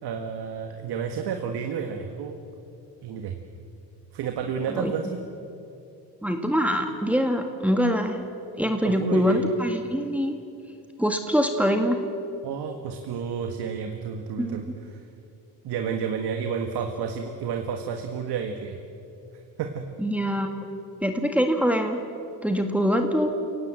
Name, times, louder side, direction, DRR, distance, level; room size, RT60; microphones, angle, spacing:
voice 1, 0.0-2.4 3.0-3.4 4.1-5.2 8.8-9.4 12.4-15.0 15.6-18.8 19.6-19.8, right 6 dB, 70° right, 5 dB, 1.8 m, -31 dB
voice 2, 6.2-8.2 8.6-10.4 11.0-12.0 14.4-14.6 20.0-20.5 21.0-22.0 22.4-23.3, equal, 5° right, 4 dB, 1.9 m, -24 dB
29.0 x 18.0 x 7.7 m, 2.7 s
cardioid pair, 105°, 40 cm